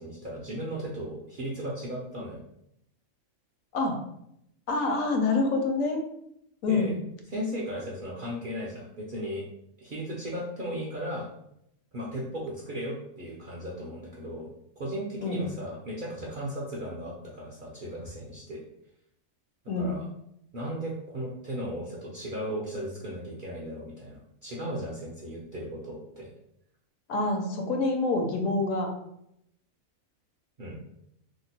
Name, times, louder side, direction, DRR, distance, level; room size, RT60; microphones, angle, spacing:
voice 1, 0.0-2.4 6.7-6.9 7.3-9.4 9.8-11.3 11.9-14.5 14.8-18.6 19.8-20.0 20.5-26.3 30.6-30.8, equal, 55° right, -5 dB, 0.6 m, -36 dB
voice 2, 4.7-6.0 6.6-6.9 15.2-15.5 19.7-20.0 27.1-28.9, left 3 dB, 75° left, 3 dB, 1.0 m, -26 dB
2.9 x 2.1 x 4.1 m, 0.77 s
omnidirectional pair, 1.5 m